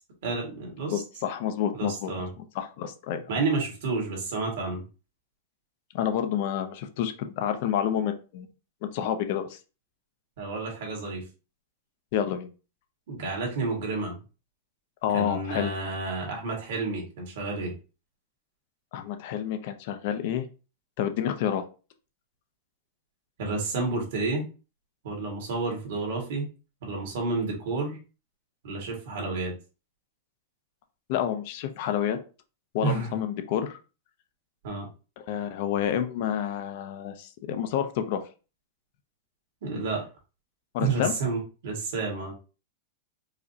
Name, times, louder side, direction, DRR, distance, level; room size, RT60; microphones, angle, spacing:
voice 1, 0.2-1.0 1.7-2.3 3.3-4.8 10.4-11.2 13.1-14.1 15.1-17.7 23.4-24.5 25.0-26.5 26.8-28.0 28.6-29.5 32.8-33.1 34.6-34.9 39.6-40.1 40.8-42.3, right 3 dB, 65° right, -1 dB, 1.7 m, -30 dB
voice 2, 0.9-2.1 2.6-3.3 5.9-8.5 8.9-9.6 12.1-12.5 15.0-15.7 18.9-20.5 21.0-21.6 31.1-32.2 32.7-33.7 35.2-38.2 40.7-41.1, left 9 dB, 50° left, 8 dB, 0.5 m, -29 dB
4.8 x 2.1 x 2.7 m, 0.33 s
supercardioid pair, 155°, 0 cm